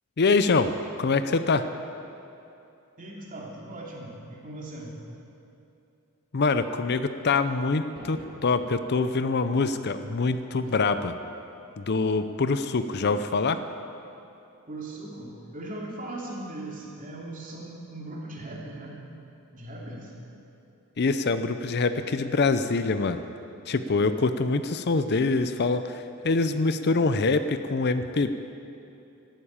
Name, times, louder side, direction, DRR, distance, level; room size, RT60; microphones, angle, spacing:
voice 1, 0.2-0.7 1.0-1.7 6.3-11.1 11.8-13.6 21.0-23.2 23.7-28.3, left 3 dB, 50° left, 11 dB, 0.6 m, -25 dB
voice 2, 3.0-4.9 14.7-19.0 19.5-20.1, right 1 dB, 40° right, -3 dB, 2.9 m, -39 dB
sound 1, 8.0-9.0, right 1 dB, 25° right, 1.8 m, -46 dB
13.0 x 12.0 x 8.7 m, 2.8 s
head